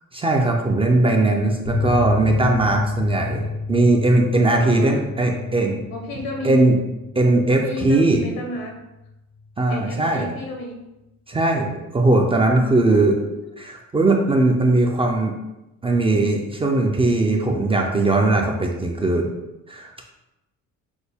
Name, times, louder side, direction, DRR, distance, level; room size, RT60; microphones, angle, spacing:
voice 1, 0.1-5.8 6.4-6.8 7.1-8.2 9.6-10.3 11.3-13.2 13.6-15.3 15.8-19.3 19.7-20.0, right 2 dB, 15° right, 1 dB, 0.3 m, -19 dB
sound 1, 1.6-8.8 9.0-9.1 9.4-9.5, left 4 dB, 50° left, 0.6 m, -30 dB
voice 2, 4.6-5.3 5.9-6.6 7.6-8.8 9.7-10.8, left 2 dB, 85° left, 2 dB, 1.1 m, -32 dB
6.1 x 2.1 x 3.4 m, 0.96 s
cardioid pair, 155°, 34 cm